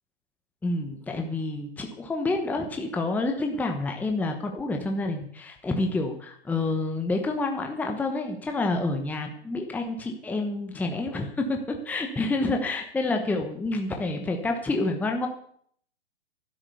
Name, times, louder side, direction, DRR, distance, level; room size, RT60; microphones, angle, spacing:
voice 1, 0.6-15.3, left 2 dB, 5° left, 4 dB, 1.0 m, -28 dB
12.0 x 9.9 x 6.9 m, 0.63 s
hypercardioid pair, 135°, 34 cm